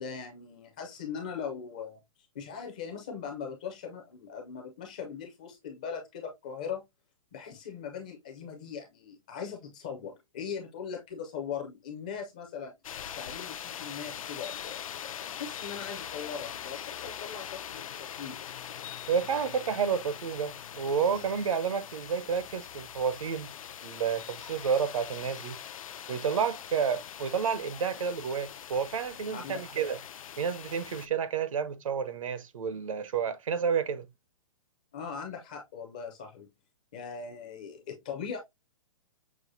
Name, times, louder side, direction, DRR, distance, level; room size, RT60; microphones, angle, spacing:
voice 1, 0.0-2.0 2.3-6.9 7.3-12.7 13.2-18.4 29.3-29.6 34.9-36.5 36.9-38.4, left 6 dB, 15° left, 0.4 m, -40 dB
sound 1, 12.8-31.1, left 9 dB, 80° left, 0.4 m, -42 dB
voice 2, 19.1-23.5 23.8-25.6 26.1-30.0 30.4-34.1, right 6 dB, 75° right, 0.7 m, -30 dB
6.1 x 2.4 x 2.6 m
hypercardioid pair, 180°, 17 cm